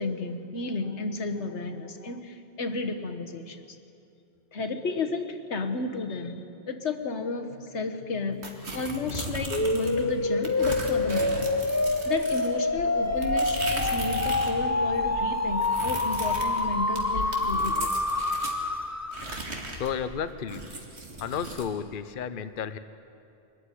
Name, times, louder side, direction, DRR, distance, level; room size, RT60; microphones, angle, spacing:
voice 1, 0.0-3.6 4.5-11.5 12.0-18.0, left 3 dB, 85° left, 6 dB, 1.6 m, -32 dB
sound 1, 8.4-10.0 10.4-14.6 14.9-18.6 19.1-21.7, right 2 dB, 75° right, 2.6 m, -37 dB
sound 2, 9.5-19.4, left 2 dB, 20° left, 0.6 m, -27 dB
voice 2, 19.8-20.6 21.2-22.8, left 7 dB, 55° left, 11 dB, 0.8 m, -32 dB
23.5 x 14.0 x 9.9 m, 2.6 s
omnidirectional pair, 1.1 m